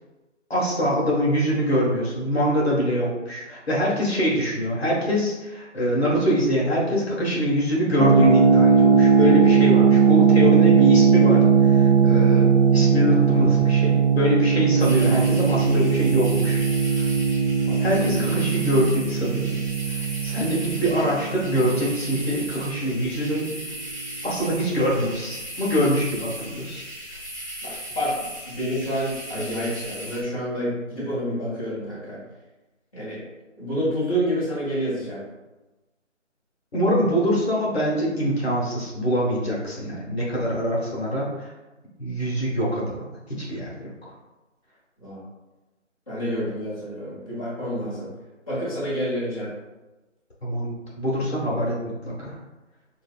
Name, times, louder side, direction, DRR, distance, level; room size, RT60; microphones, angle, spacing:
voice 1, 0.5-16.6 17.0-17.1 17.8-19.5 20.2-23.5 24.2-26.8 36.7-41.5 42.0-43.9 50.4-51.8 52.0-52.3, equal, 55° left, -5 dB, 1.4 m, -24 dB
sound 1, 8.0-22.7, right 6 dB, 50° right, 0.7 m, -19 dB
sound 2, 14.8-30.2, equal, 25° right, 0.9 m, -37 dB
voice 2, 15.1-15.7 17.6-18.3 27.6-28.1 28.4-32.2 32.9-33.3 33.6-35.2 45.0-45.2 46.1-48.1 48.5-49.5, equal, 30° left, -11 dB, 1.2 m, -28 dB
6.3 x 2.4 x 2.3 m, 1.1 s
figure-of-eight pair, 175°, 37 cm